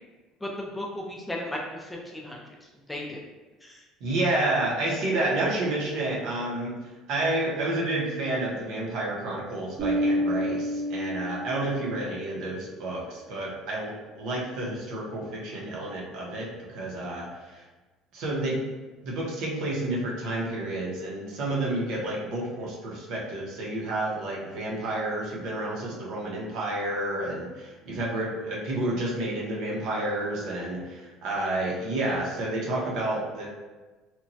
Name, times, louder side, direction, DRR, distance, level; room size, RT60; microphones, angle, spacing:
voice 1, 0.4-3.2 3.6-3.8, left 1 dB, 5° left, -1 dB, 0.3 m, -36 dB
voice 2, 4.0-6.7 7.1-17.6 18.1-18.6 19.0-33.5, right 1 dB, 65° right, -3 dB, 0.7 m, -30 dB
Bass guitar, 9.8-12.2, equal, 30° right, 0.8 m, -28 dB
2.9 x 2.2 x 2.6 m, 1.2 s
cardioid pair, 140°, 0 cm